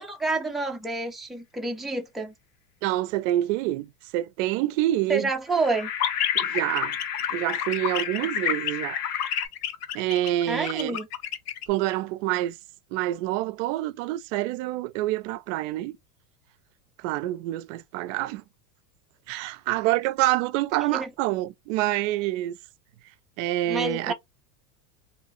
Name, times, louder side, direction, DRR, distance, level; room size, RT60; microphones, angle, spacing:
voice 1, 0.0-2.3 5.1-5.9 10.5-11.1 20.9-21.1 23.7-24.1, right 3 dB, ahead, 0.3 m, -28 dB
voice 2, 2.8-5.3 6.4-7.0 7.3-9.0 9.9-11.0 11.7-12.6 12.9-16.0 17.0-18.4 19.3-22.6 23.4-24.1, right 15 dB, 60° right, 0.5 m, -27 dB
sound 1, 5.5-9.5, left 8 dB, 50° left, 0.8 m, -34 dB
sound 2, 6.0-11.6, left 9 dB, 85° left, 0.7 m, -28 dB
2.7 x 2.5 x 2.9 m
supercardioid pair, 115°, 44 cm